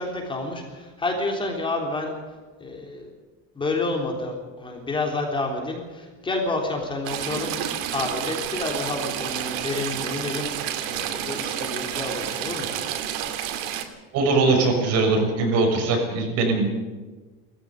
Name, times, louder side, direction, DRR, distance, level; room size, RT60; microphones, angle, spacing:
voice 1, 0.0-2.1 2.6-3.1 3.5-7.6 7.9-12.7, left 2 dB, 15° left, 1 dB, 3.6 m, -29 dB
Stream / Trickle dribble, 7.1-13.8, right 10 dB, 85° right, 2.4 m, -30 dB
voice 2, 14.1-16.7, right 3 dB, 60° right, 2 dB, 6.5 m, -21 dB
19.0 x 15.0 x 9.3 m, 1.3 s
cardioid pair, 150°, 29 cm